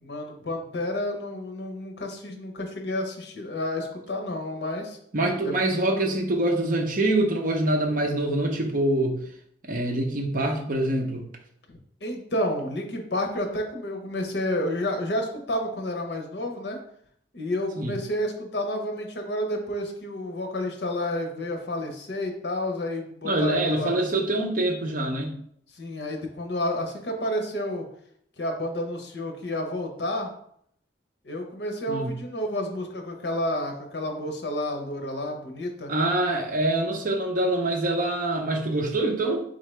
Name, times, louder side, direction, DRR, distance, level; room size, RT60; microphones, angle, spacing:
voice 1, 0.0-5.0 5.4-5.5 11.7-16.8 17.3-24.0 25.7-27.9 28.4-30.3 31.2-35.9, left 1 dB, 65° left, 3 dB, 0.8 m, -30 dB
voice 2, 5.1-9.2 9.6-11.2 17.8-17.9 23.2-25.4 31.9-32.1 35.9-39.4, right 1 dB, 45° right, 2 dB, 0.7 m, -25 dB
3.9 x 3.6 x 3.2 m, 0.68 s
head